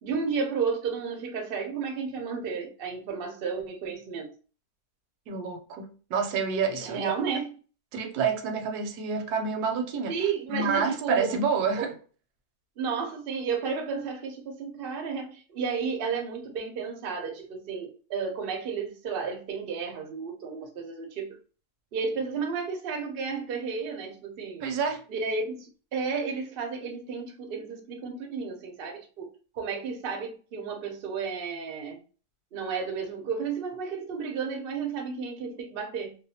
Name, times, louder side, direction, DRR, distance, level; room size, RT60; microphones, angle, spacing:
voice 1, 0.0-4.3 6.9-7.5 10.1-11.3 11.8-11.9 12.8-21.4 21.9-24.6 25.1-29.3 29.5-32.0 32.5-36.2, right 5 dB, 60° right, 0.6 m, -32 dB
voice 2, 5.3-7.1 7.9-10.2 10.5-11.9 24.6-25.0, right 5 dB, 75° right, 1.1 m, -28 dB
2.6 x 2.1 x 2.7 m
omnidirectional pair, 1.7 m